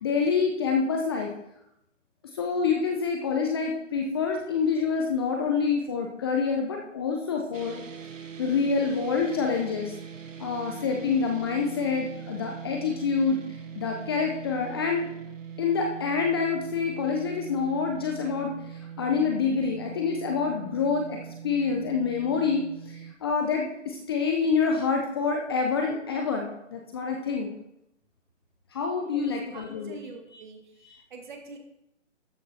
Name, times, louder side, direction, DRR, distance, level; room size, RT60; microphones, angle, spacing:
voice 1, 0.0-1.3 2.3-7.8 8.4-9.9 10.4-13.4 13.7-15.0 15.6-21.2 21.4-27.5 28.7-30.0 30.8-31.0, left 5 dB, 20° left, 1 dB, 0.7 m, -27 dB
sound 1, 7.5-23.1, right 8 dB, 80° right, 1.2 m, -42 dB
voice 2, 29.5-31.6, right 4 dB, 40° right, 3 dB, 2.1 m, -45 dB
13.0 x 6.5 x 4.4 m, 0.84 s
figure-of-eight pair, 145°, 38 cm